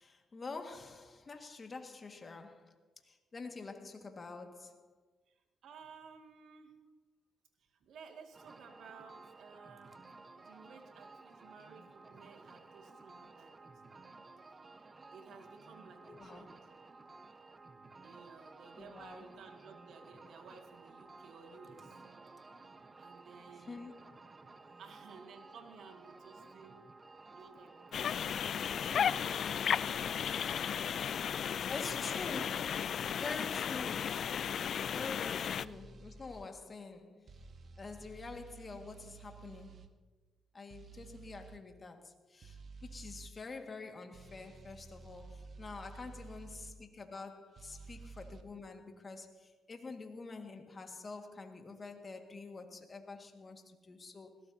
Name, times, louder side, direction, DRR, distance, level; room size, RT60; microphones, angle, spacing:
voice 1, 0.0-4.9 16.1-16.5 18.8-19.3 23.5-24.3 31.6-34.5 34.9-37.4 37.8-39.9 40.5-54.4, left 3 dB, 35° left, 1.9 m, -47 dB
voice 2, 5.3-6.8 7.6-10.0 10.4-14.1 15.1-16.6 18.0-21.9 23.0-23.7 24.8-26.8 27.3-30.3 31.0-32.3 32.7-33.0 45.9-46.0, right 5 dB, 70° right, 2.2 m, -56 dB
sound 1, 8.3-28.1, right 3 dB, 30° right, 1.1 m, -55 dB
sound 2, 27.9-35.6, left 8 dB, 60° left, 0.3 m, -34 dB
sound 3, 35.6-36.5 37.3-39.9 40.7-41.6 42.4-43.3 44.1-46.8 47.6-48.4, right 4 dB, 50° right, 1.1 m, -52 dB
20.0 x 17.0 x 2.8 m
cardioid pair, 90°, 0 cm